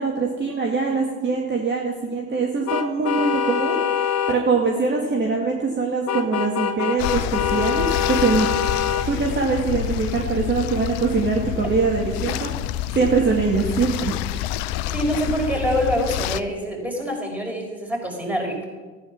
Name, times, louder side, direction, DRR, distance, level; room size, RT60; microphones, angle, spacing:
voice 1, 0.0-8.5 9.0-12.5 12.9-14.1, right 4 dB, 25° right, 0 dB, 2.1 m, -23 dB
sound 1, 2.7-4.4 6.1-9.1, left 8 dB, 40° left, 1.1 m, -24 dB
sound 2, 7.0-16.4, left 13 dB, 60° left, 0.7 m, -28 dB
voice 2, 14.9-18.7, equal, 5° right, 0 dB, 4.8 m, -25 dB
15.0 x 9.5 x 6.0 m, 1.3 s
hypercardioid pair, 70°, 40 cm